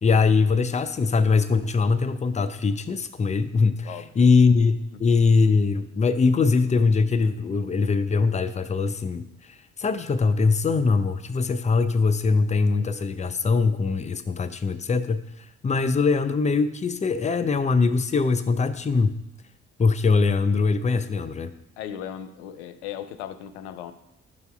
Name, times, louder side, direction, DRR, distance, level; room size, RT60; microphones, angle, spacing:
voice 1, 0.0-9.2 9.8-15.2 15.6-19.2 19.8-21.5, left 4 dB, 20° left, 12 dB, 0.5 m, -22 dB
voice 2, 3.8-4.3 21.8-23.9, left 10 dB, 75° left, 11 dB, 0.5 m, -37 dB
10.5 x 6.7 x 2.3 m, 0.87 s
figure-of-eight pair, 40°, 35 cm